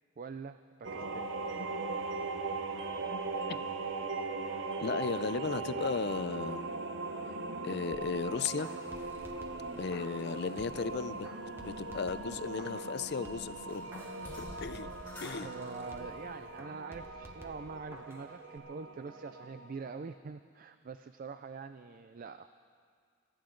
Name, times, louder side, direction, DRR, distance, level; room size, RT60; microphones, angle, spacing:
voice 1, 0.2-1.3 15.4-22.5, right 5 dB, 45° right, 10 dB, 0.4 m, -44 dB
sound 1, 0.8-20.1, right 3 dB, 65° right, 0.8 m, -40 dB
voice 2, 4.8-6.7 7.6-8.7 9.8-11.3 11.6-14.0 14.4-14.9 15.2-15.5, left 5 dB, 60° left, 14 dB, 0.5 m, -35 dB
sound 2, 7.9-10.9 11.2-12.9 13.2-16.2 16.6-18.3 18.6-18.7, equal, 10° right, 1.2 m, -53 dB
sound 3, 8.9-16.6, left 1 dB, 10° left, 3.8 m, -54 dB
27.0 x 13.0 x 3.9 m, 2.2 s
head